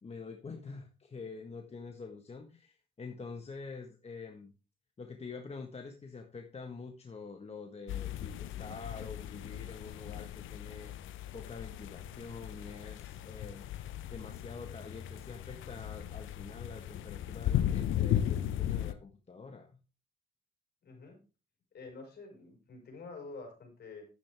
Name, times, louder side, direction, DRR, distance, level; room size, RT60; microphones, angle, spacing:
voice 1, 0.0-4.5 5.0-10.9 11.3-13.6 14.1-19.8, left 4 dB, 30° left, 4 dB, 1.4 m, -46 dB
sound 1, 7.9-18.9, left 11 dB, 80° left, 0.8 m, -36 dB
voice 2, 20.8-21.2 21.7-24.1, left 3 dB, 55° left, 2 dB, 5.4 m, -48 dB
11.0 x 9.1 x 3.5 m, 0.32 s
cardioid pair, 90°, 20 cm